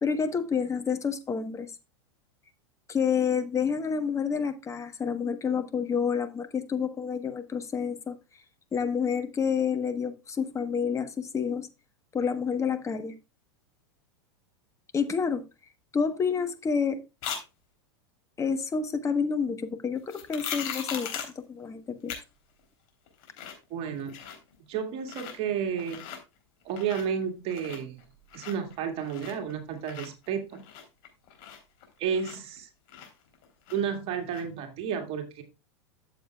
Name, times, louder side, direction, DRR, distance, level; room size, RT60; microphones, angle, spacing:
voice 1, 0.0-1.7 2.9-8.1 8.7-11.7 12.1-13.1 14.9-15.4 15.9-17.0 18.4-22.1, left 6 dB, 20° left, 1.2 m, -29 dB
sound 1, 17.2-17.4 20.1-21.4 22.1-22.2 22.6-22.7 23.1-23.6 23.9-24.5 25.0-25.4 25.7-26.2 26.6-27.2 27.5-29.5 29.8-32.6 32.9-34.0 34.3-34.4, left 8 dB, 55° left, 3.4 m, -39 dB
voice 2, 23.7-24.2 24.7-26.1 26.6-28.0 28.3-30.7 32.0-32.7 33.7-35.4, right 7 dB, 45° right, 2.0 m, -31 dB
13.0 x 7.2 x 2.3 m
hypercardioid pair, 100°, 14 cm